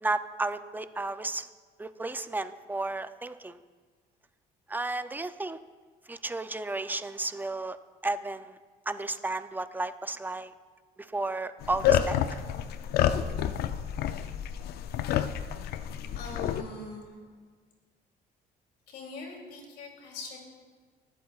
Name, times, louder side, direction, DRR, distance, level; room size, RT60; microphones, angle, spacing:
voice 1, 0.0-1.5 1.8-3.6 4.7-5.6 6.1-7.8 8.0-8.6 8.9-10.5 11.0-12.2, right 2 dB, 10° right, 12 dB, 0.4 m, -33 dB
sound 1, 11.6-16.6, left 10 dB, 70° left, 0.5 m, -29 dB
voice 2, 16.1-17.3 18.9-20.4, left 3 dB, 85° left, 0 dB, 2.8 m, -42 dB
21.5 x 8.4 x 2.4 m, 1.5 s
cardioid pair, 110°, 17 cm